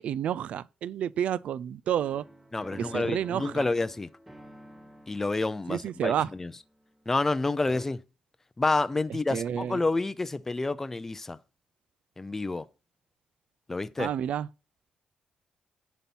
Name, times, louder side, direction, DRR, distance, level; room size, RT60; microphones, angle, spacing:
voice 1, 0.0-2.3 2.7-3.6 5.7-6.3 9.3-9.8 14.0-14.5, right 9 dB, 65° right, 0.4 m, -30 dB
sound 1, 2.0-7.3 7.7-7.9, equal, 5° right, 0.9 m, -50 dB
voice 2, 2.5-4.1 5.1-6.5 7.1-8.0 8.6-11.4 12.2-12.7 13.7-14.1, left 3 dB, 15° left, 0.5 m, -29 dB
11.0 x 4.2 x 6.0 m
cardioid pair, 140°, 2 cm